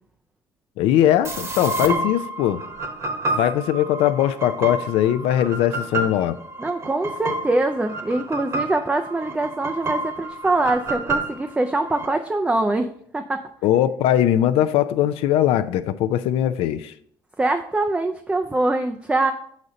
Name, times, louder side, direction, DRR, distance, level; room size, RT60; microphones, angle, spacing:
voice 1, 0.8-2.6 3.4-6.4 13.6-16.9, left 11 dB, 85° left, 0.4 m, -20 dB
sound 1, 1.2-12.1, right 2 dB, 30° right, 0.9 m, -30 dB
voice 2, 6.6-13.4 17.4-19.3, right 2 dB, 10° right, 0.3 m, -23 dB
6.5 x 4.1 x 4.9 m
cardioid pair, 150°, 10 cm